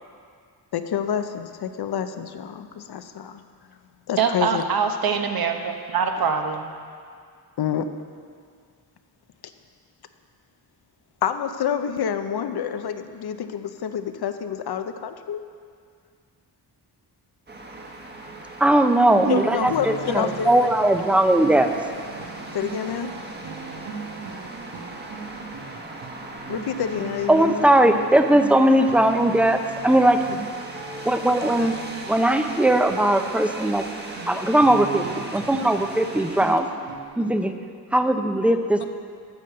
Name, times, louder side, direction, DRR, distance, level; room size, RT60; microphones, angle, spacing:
voice 1, 0.7-3.4 4.1-4.6 7.6-7.9 11.2-15.4 19.3-20.7 22.5-23.1 26.5-27.7, left 8 dB, 70° left, 9 dB, 0.7 m, -28 dB
voice 2, 4.2-6.7 19.2-19.7, right 6 dB, 60° right, 5 dB, 0.9 m, -24 dB
sound 1, 17.5-36.6, right 2 dB, 25° right, 1.1 m, -38 dB
voice 3, 18.6-21.7 27.3-30.2 31.1-31.7 32.1-33.8 34.3-36.7 37.2-37.5 37.9-38.9, right 1 dB, 5° right, 7 dB, 0.5 m, -19 dB
sound 2, 19.2-37.1, right 5 dB, 85° right, 1.1 m, -40 dB
9.4 x 6.7 x 6.6 m, 2.1 s
wide cardioid pair, 110°, 41 cm